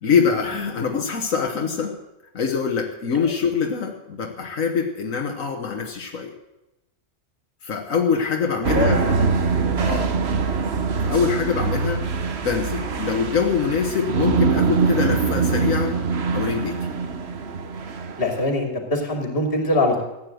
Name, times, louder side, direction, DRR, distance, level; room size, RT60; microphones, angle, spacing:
voice 1, 0.0-2.0 2.3-6.3 7.6-9.1 9.8-10.2 10.7-16.0 16.3-16.8, left 6 dB, 85° left, 2 dB, 1.7 m, -24 dB
sound 1, 8.6-18.5, right 5 dB, 55° right, 1.2 m, -23 dB
voice 2, 8.7-9.3 9.5-10.0 18.2-20.0, left 2 dB, 45° left, 3 dB, 2.8 m, -23 dB
15.0 x 9.4 x 7.8 m, 0.94 s
omnidirectional pair, 1.3 m